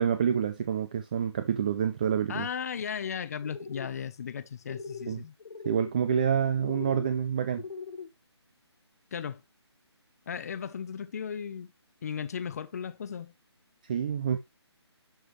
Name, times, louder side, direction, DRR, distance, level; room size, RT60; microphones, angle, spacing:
voice 1, 0.0-2.5 5.1-5.2 5.7-7.6 13.8-14.4, right 8 dB, 20° right, 0.4 m, -27 dB
voice 2, 2.3-5.3 9.1-9.4 10.3-11.7 12.0-13.3, left 7 dB, 35° left, 0.7 m, -36 dB
sound 1, 3.4-3.9 4.6-5.1 5.4-5.9 6.6-7.0 7.5-8.1, left 5 dB, 55° left, 1.2 m, -40 dB
11.5 x 4.9 x 3.2 m
figure-of-eight pair, 160°, 14 cm